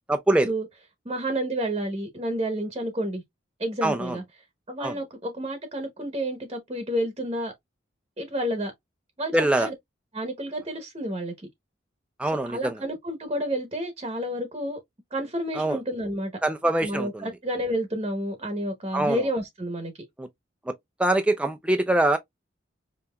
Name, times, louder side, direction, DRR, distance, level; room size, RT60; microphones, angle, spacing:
voice 1, 0.1-0.5 3.8-4.2 4.8-4.9 9.3-9.7 12.2-12.8 15.6-15.8 16.4-17.3 18.9-19.2 20.2-20.3 21.0-22.2, right 1 dB, 5° right, 0.3 m, -23 dB
voice 2, 1.0-3.2 3.6-4.2 4.7-7.5 8.2-8.7 9.2-9.7 10.1-11.3 12.5-14.8 15.1-16.3 16.8-19.9, right 1 dB, 30° right, 0.9 m, -30 dB
5.5 x 2.8 x 2.2 m
head